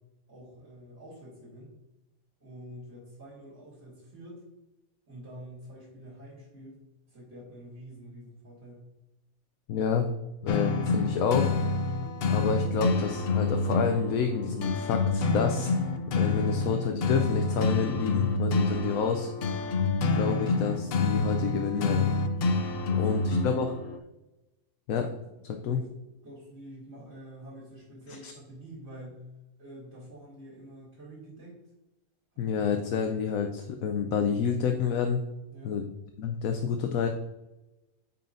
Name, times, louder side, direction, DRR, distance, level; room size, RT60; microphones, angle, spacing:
voice 1, 0.3-1.7 2.4-4.4 5.1-6.8 7.1-8.8 22.8-23.8 25.6-25.9 26.2-29.3 29.6-31.6 32.3-32.4 32.9-33.0 35.5-35.8, equal, 45° right, -10 dB, 2.9 m, -46 dB
voice 2, 9.7-10.1 10.4-11.5 12.3-15.7 16.1-19.3 20.2-22.1 23.0-23.7 24.9-25.1 25.5-25.8 28.2-28.3 32.4-35.2 35.6-35.9 36.2-37.1, left 6 dB, 75° left, 5 dB, 1.1 m, -29 dB
sound 1, 10.5-24.0, left 3 dB, 55° left, 0.7 m, -28 dB
9.2 x 5.7 x 2.6 m, 1.0 s
omnidirectional pair, 1.5 m